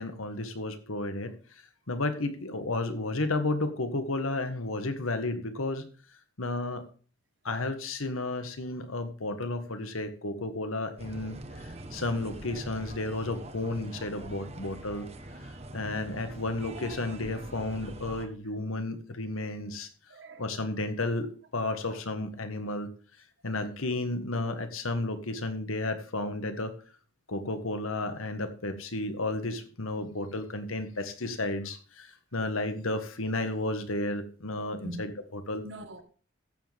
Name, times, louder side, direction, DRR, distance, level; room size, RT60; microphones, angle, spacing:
voice 1, 0.0-1.3 1.9-5.9 6.4-6.8 7.4-11.4 11.6-15.1 15.4-19.9 20.4-21.3 21.5-22.9 23.4-26.7 27.3-35.6, left 2 dB, 85° left, 1.5 m, -32 dB
sound 1, 11.0-18.3, right 1 dB, 30° right, 1.0 m, -43 dB
voice 2, 20.1-20.5 21.8-22.0 34.8-35.0 35.6-36.0, right 1 dB, 55° right, 1.4 m, -43 dB
14.0 x 7.5 x 3.5 m
head